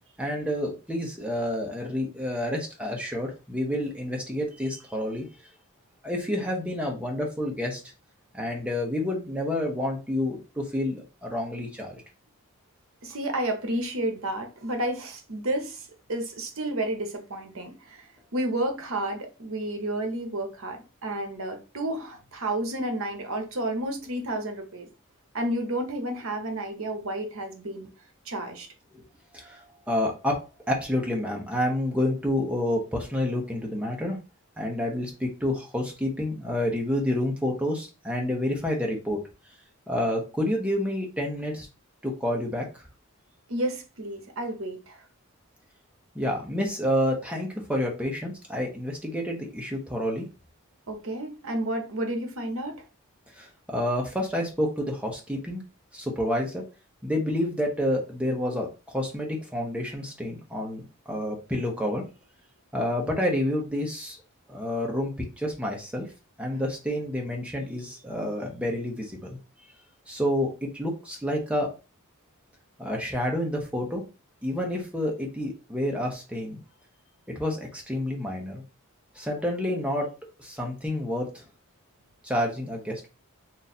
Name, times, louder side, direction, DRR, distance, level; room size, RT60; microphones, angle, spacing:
voice 1, 0.2-5.3 6.0-7.8 8.3-12.0 28.9-29.0 29.3-30.4 30.7-34.2 34.6-39.2 39.9-41.7 42.0-42.8 46.1-50.3 53.3-55.6 55.9-56.6 57.0-58.7 58.9-62.0 62.7-64.2 64.5-65.1 65.4-66.1 66.4-69.4 70.1-71.7 72.8-74.0 74.4-76.6 77.3-78.6 79.1-80.1 80.4-81.4 82.2-83.1, left 1 dB, 5° right, 0.9 m, -29 dB
voice 2, 13.0-24.9 25.3-27.9 28.2-28.7 43.5-45.0 50.9-52.8, right 1 dB, 60° right, 0.9 m, -31 dB
3.2 x 2.6 x 4.1 m
head